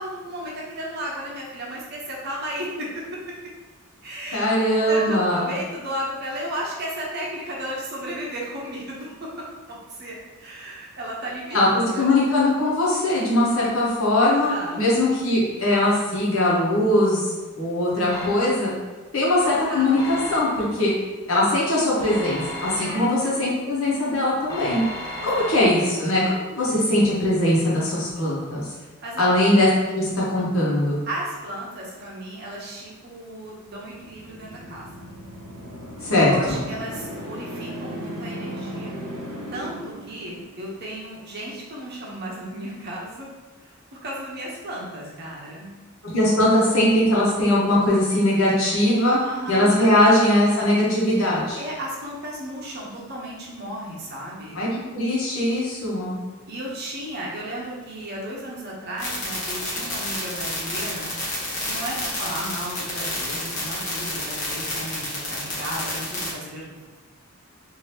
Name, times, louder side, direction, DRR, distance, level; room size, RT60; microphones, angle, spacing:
voice 1, 0.0-3.1 4.0-4.5 4.8-11.6 11.8-12.1 14.2-14.8 19.4-19.9 22.8-23.1 25.2-25.5 25.8-26.0 28.8-29.3 31.1-35.1 36.2-38.9 39.5-43.3 43.6-43.7 44.0-45.8 49.2-50.0 51.6-54.6 56.5-61.1 61.6-66.7, right 1 dB, 50° right, -3 dB, 0.7 m, -34 dB
voice 2, 4.3-5.5 11.5-17.2 17.6-18.7 19.1-20.9 21.3-24.8 25.2-28.6 29.2-31.0 36.0-36.6 46.0-49.2 49.5-51.6 54.5-54.7 54.9-56.2, left 1 dB, 80° left, -6 dB, 1.0 m, -20 dB
sound 1, 18.1-18.8 20.0-20.9 22.1-23.3 24.5-26.2, left 1 dB, 20° left, 0.5 m, -35 dB
sound 2, 33.8-40.8, equal, 85° right, 0.9 m, -36 dB
sound 3, 59.0-66.3, left 2 dB, 35° left, 1.0 m, -29 dB
2.8 x 2.7 x 3.3 m, 1.3 s
head